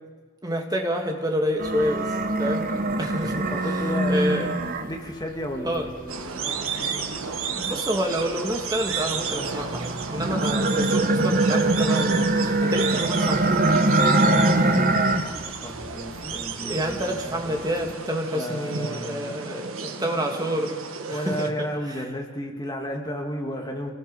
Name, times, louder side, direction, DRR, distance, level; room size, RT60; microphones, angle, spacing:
voice 1, 0.4-2.7 3.0-4.5 5.6-5.9 7.1-13.7 16.2-20.7 21.1-21.5, equal, 20° right, 2 dB, 2.0 m, -28 dB
sound 1, 1.6-5.2 5.7-8.0 8.5-15.4 15.7-16.5 16.9-17.9, right 2 dB, 40° right, 1.2 m, -23 dB
voice 2, 3.2-4.3 4.9-7.2 14.2-17.5 18.3-19.5 21.1-23.9, equal, 20° left, 1 dB, 1.9 m, -34 dB
sound 2, 6.1-21.5, right 5 dB, 75° right, 1.4 m, -33 dB
27.5 x 18.5 x 5.4 m, 1.5 s
head